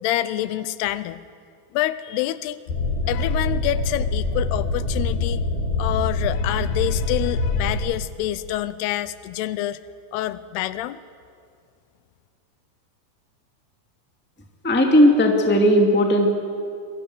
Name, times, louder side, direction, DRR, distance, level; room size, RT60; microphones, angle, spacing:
voice 1, 0.0-1.2 1.7-2.6 3.1-5.4 5.8-9.8 10.1-11.0, left 14 dB, 90° left, 15 dB, 2.8 m, -27 dB
sound 1, 2.7-7.7, left 2 dB, 70° left, 4.7 m, -24 dB
voice 2, 14.6-16.3, equal, 5° left, 2 dB, 1.3 m, -16 dB
26.5 x 21.5 x 7.9 m, 2.3 s
omnidirectional pair, 4.6 m